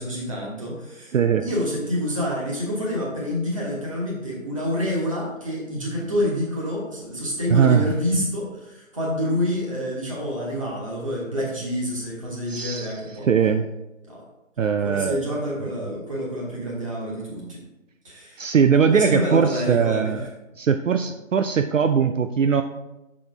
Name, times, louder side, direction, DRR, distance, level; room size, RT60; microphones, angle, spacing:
voice 1, 0.0-1.2 1.4-13.3 14.1-14.2 14.8-17.6 18.0-18.4 18.9-20.3, equal, 25° right, -4 dB, 1.4 m, -27 dB
voice 2, 1.1-1.4 7.5-7.9 12.5-12.9 13.2-13.6 14.6-15.3 17.4-17.5 18.4-20.3 20.6-22.6, right 7 dB, 70° right, 8 dB, 0.5 m, -20 dB
6.3 x 5.5 x 3.4 m, 0.98 s
figure-of-eight pair, 170°, 41 cm